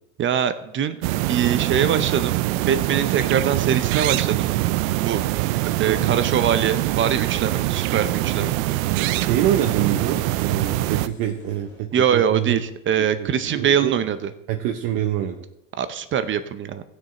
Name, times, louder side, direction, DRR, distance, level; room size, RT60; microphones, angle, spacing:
voice 1, 0.2-1.0 1.3-2.4 2.7-4.5 5.0-5.2 5.8-8.6 11.9-14.3 15.8-16.8, right 8 dB, 30° right, 12 dB, 0.6 m, -23 dB
sound 1, 1.0-11.1, right 17 dB, 70° right, 0.5 m, -23 dB
sound 2, 4.4-11.8, left 4 dB, 25° left, 2.2 m, -48 dB
voice 2, 5.9-6.2 9.1-12.6 13.0-13.3 13.5-14.0 14.5-15.4, right 11 dB, 55° right, 4 dB, 0.9 m, -25 dB
16.0 x 6.5 x 4.2 m, 0.89 s
supercardioid pair, 110°, 42 cm